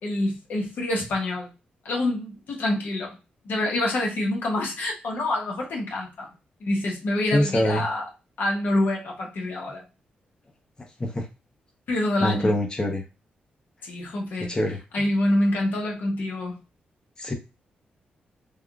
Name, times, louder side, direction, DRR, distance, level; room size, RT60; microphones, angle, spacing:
voice 1, 0.0-1.5 1.8-3.2 3.4-6.3 6.6-8.0 8.4-9.8 11.9-12.5 13.8-14.6 14.9-16.6, left 1 dB, 70° left, 1.0 m, -26 dB
voice 2, 7.3-7.8 10.8-11.3 12.2-13.0 14.5-14.8 17.2-17.3, left 1 dB, 25° left, 0.8 m, -24 dB
3.5 x 2.4 x 2.3 m
cardioid pair, 80°, 3 cm